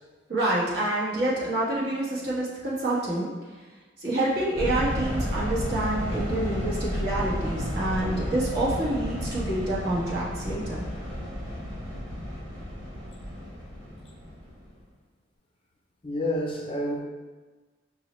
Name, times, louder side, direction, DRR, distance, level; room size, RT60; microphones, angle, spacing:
voice 1, 0.3-3.3 4.0-10.9, right 1 dB, 55° right, -6 dB, 1.1 m, -27 dB
sound 1, 4.5-14.7, equal, 25° right, 1.3 m, -32 dB
voice 2, 16.0-17.0, left 1 dB, 30° left, -1 dB, 0.5 m, -28 dB
5.4 x 2.1 x 3.0 m, 1.3 s
head